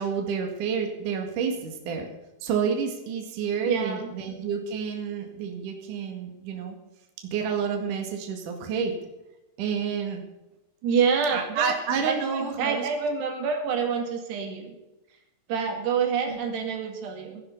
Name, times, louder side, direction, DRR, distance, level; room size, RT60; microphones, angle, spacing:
voice 1, 0.0-2.1 2.4-6.8 7.2-8.9 9.6-10.2 11.3-12.9 16.3-16.4, right 6 dB, 60° right, 4 dB, 3.2 m, -29 dB
voice 2, 3.6-4.1 10.8-11.7 12.0-14.7 15.5-17.4, right 6 dB, 85° right, 4 dB, 4.3 m, -27 dB
17.0 x 11.5 x 5.5 m, 0.99 s
omnidirectional pair, 4.7 m